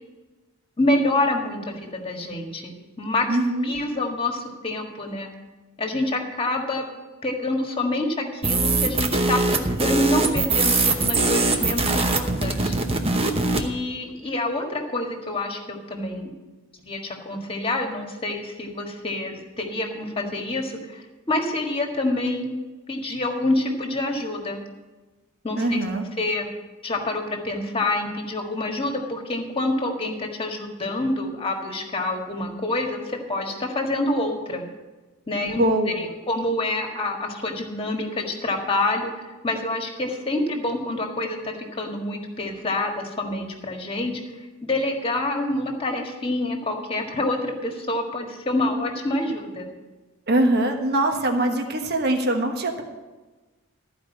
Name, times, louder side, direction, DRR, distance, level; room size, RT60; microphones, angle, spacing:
voice 1, 0.8-2.7 3.0-3.2 3.6-5.3 5.8-6.8 7.2-12.7 13.5-16.3 16.8-17.0 17.2-22.5 22.9-24.6 25.4-25.8 26.2-26.5 26.8-34.6 35.3-35.6 36.0-39.1 39.4-44.1 44.6-49.7, left 2 dB, 25° left, 2 dB, 1.7 m, -27 dB
voice 2, 3.3-3.7 25.6-26.0 35.4-36.1 50.3-52.8, right 1 dB, 45° right, 4 dB, 1.3 m, -23 dB
sound 1, 8.4-13.7, right 3 dB, 25° right, 0.9 m, -22 dB
14.0 x 5.1 x 9.2 m, 1.2 s
head